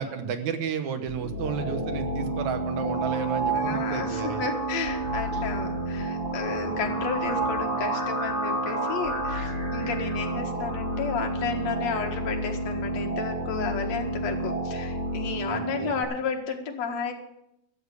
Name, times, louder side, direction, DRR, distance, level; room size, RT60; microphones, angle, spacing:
voice 1, 0.0-4.4 15.5-15.9, right 7 dB, 75° right, 8 dB, 2.4 m, -32 dB
sound 1, 1.1-16.0, right 2 dB, 45° left, 4.7 m, -30 dB
voice 2, 3.5-17.1, left 5 dB, 60° left, 2 dB, 2.7 m, -32 dB
13.5 x 7.4 x 8.2 m, 0.83 s
omnidirectional pair, 3.5 m